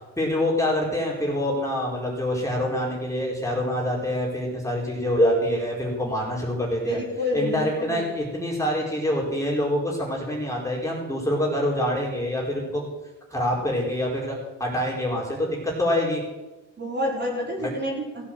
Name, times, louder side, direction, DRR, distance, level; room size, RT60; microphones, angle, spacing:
voice 1, 0.2-7.0 7.3-12.9 13.3-16.2 17.6-17.7, left 1 dB, 10° left, -3 dB, 4.8 m, -25 dB
voice 2, 6.9-8.0 16.8-18.2, left 1 dB, 35° right, -2 dB, 5.3 m, -28 dB
16.0 x 8.6 x 7.8 m, 1.1 s
cardioid pair, 90°, 30 cm